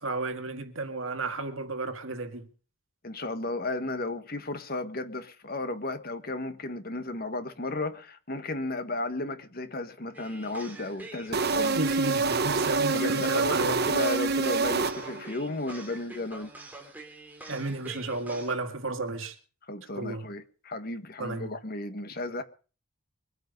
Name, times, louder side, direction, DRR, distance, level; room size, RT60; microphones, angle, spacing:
voice 1, 0.0-2.5 11.8-13.8 17.5-19.3 19.9-20.2 21.2-21.5, right 3 dB, 65° right, 2.1 m, -33 dB
voice 2, 3.0-11.8 12.9-16.5 19.7-22.4, left 2 dB, 45° left, 1.5 m, -34 dB
sound 1, 10.1-18.5, right 2 dB, 10° right, 3.4 m, -45 dB
sound 2, 11.3-15.4, right 4 dB, 45° right, 1.2 m, -26 dB
24.0 x 9.4 x 5.3 m
head